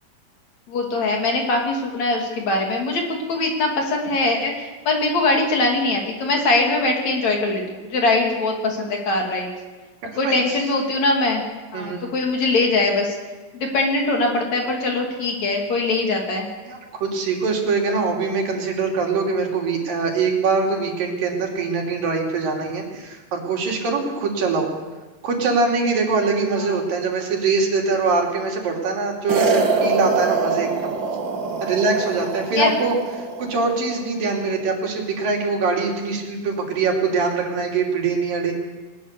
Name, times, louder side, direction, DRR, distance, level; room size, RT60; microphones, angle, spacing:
voice 1, 0.7-9.5 10.2-11.4 11.7-13.2 13.5-16.5 26.6-26.8 32.5-32.7, left 2 dB, 55° left, 1 dB, 3.8 m, -22 dB
voice 2, 10.0-10.7 11.7-12.0 16.7-24.7 25.2-30.9 31.6-38.5, right 4 dB, 70° right, 0 dB, 4.7 m, -23 dB
sound 1, 29.3-33.7, right 4 dB, 40° right, 2.0 m, -24 dB
20.0 x 20.0 x 6.8 m, 1.3 s
omnidirectional pair, 4.1 m